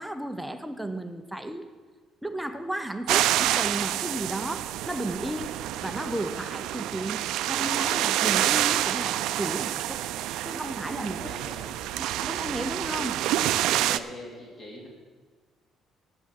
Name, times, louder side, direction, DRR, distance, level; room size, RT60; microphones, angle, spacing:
voice 1, 0.0-1.7 2.2-5.6 5.8-10.0 10.4-11.3 11.9-13.2, right 1 dB, 5° right, 8 dB, 0.5 m, -34 dB
sound 1, 3.1-14.0, right 13 dB, 85° right, 0.4 m, -28 dB
voice 2, 11.1-11.8 13.5-14.9, left 2 dB, 30° left, -2 dB, 2.8 m, -43 dB
8.9 x 8.2 x 7.4 m, 1.4 s
cardioid pair, 155°, 0 cm